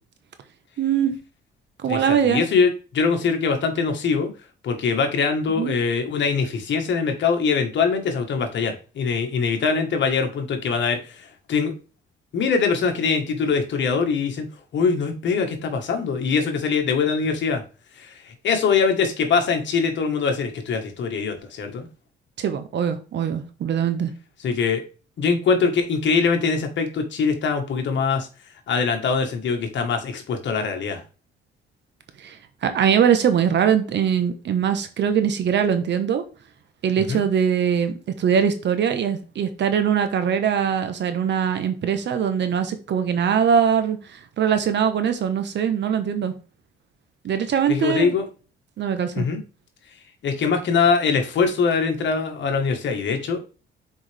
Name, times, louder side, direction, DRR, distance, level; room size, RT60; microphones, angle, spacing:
voice 1, 0.8-1.1 1.8-2.4 5.5-5.7 22.4-24.1 32.2-36.2 36.8-46.3 47.2-48.1 48.8-49.3, right 8 dB, 65° right, 9 dB, 1.1 m, -22 dB
voice 2, 1.9-4.3 4.6-11.7 12.3-14.5 14.7-17.6 18.0-21.9 24.4-24.8 25.2-28.3 28.7-31.0 37.1-37.2 47.7-48.3 49.1-49.4 50.2-53.4, left 5 dB, 65° left, 5 dB, 1.6 m, -23 dB
6.2 x 4.8 x 3.5 m, 0.35 s
cardioid pair, 90°, 20 cm